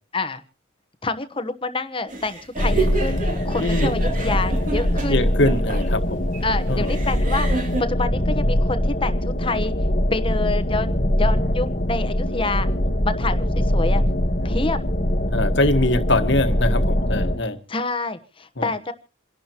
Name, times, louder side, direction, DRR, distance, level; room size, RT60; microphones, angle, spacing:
voice 1, 1.0-5.2 6.4-7.5 7.8-9.7 10.1-12.7 13.0-14.0 14.4-14.8 17.7-18.9, left 3 dB, 25° left, 1.0 m, -27 dB
sound 1, 2.1-7.8, right 3 dB, 40° right, 3.0 m, -30 dB
sound 2, 2.6-17.4, equal, 40° left, 1.3 m, -22 dB
voice 2, 3.6-3.9 5.1-6.3 6.7-7.0 15.3-17.6 18.6-18.7, left 1 dB, 60° left, 1.5 m, -22 dB
sound 3, 4.4-7.0 8.7-12.3 13.4-15.0, equal, 15° right, 5.4 m, -39 dB
28.0 x 11.5 x 2.9 m
head